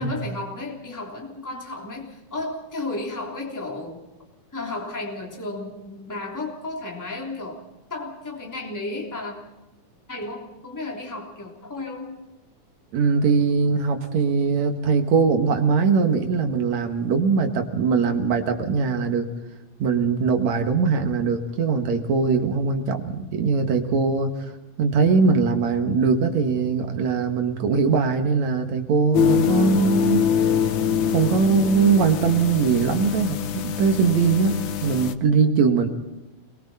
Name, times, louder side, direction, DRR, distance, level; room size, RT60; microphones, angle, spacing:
voice 1, 0.0-4.0 4.5-7.6 7.9-9.3 10.1-12.2, left 2 dB, 5° left, -1 dB, 2.9 m, -33 dB
voice 2, 12.9-19.3 19.8-24.3 24.8-30.3 31.1-35.9, right 5 dB, 65° right, 5 dB, 2.8 m, -21 dB
sound 1, 29.1-35.1, left 8 dB, 85° left, 1.0 m, -24 dB
28.5 x 22.5 x 4.3 m, 1.0 s
omnidirectional pair, 3.5 m